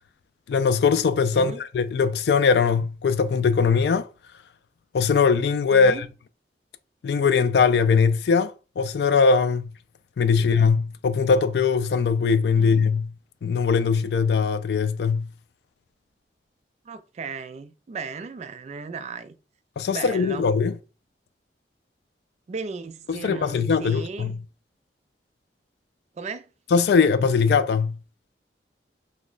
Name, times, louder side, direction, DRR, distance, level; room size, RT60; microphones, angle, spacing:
voice 1, 0.5-4.1 4.9-6.1 7.0-9.7 10.2-13.1 13.4-15.3 19.8-20.8 23.1-24.4 26.7-28.0, left 5 dB, 65° left, 0.3 m, -21 dB
voice 2, 5.7-6.1 10.3-10.5 12.6-12.8 16.9-19.4 19.9-20.5 22.5-24.3 26.2-26.5, right 4 dB, 40° right, 0.3 m, -36 dB
2.9 x 2.2 x 3.9 m
head